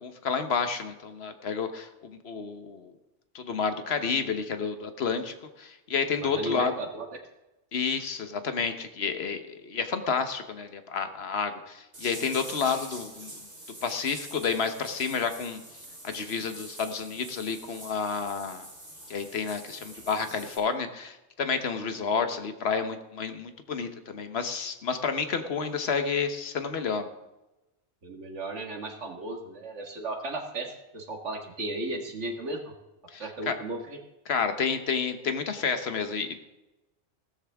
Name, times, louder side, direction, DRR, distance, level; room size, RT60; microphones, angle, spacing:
voice 1, 0.0-2.9 3.3-6.7 7.7-13.3 13.8-15.6 16.0-18.6 19.1-27.1 33.1-33.6 34.3-36.4, left 5 dB, 60° left, 8 dB, 1.3 m, -30 dB
voice 2, 6.2-7.1 28.0-32.7 33.2-34.0, right 2 dB, 75° right, 3 dB, 2.1 m, -35 dB
sound 1, 11.9-20.6, right 1 dB, 55° right, 4.6 m, -45 dB
15.5 x 13.5 x 3.6 m, 1.0 s
omnidirectional pair, 1.2 m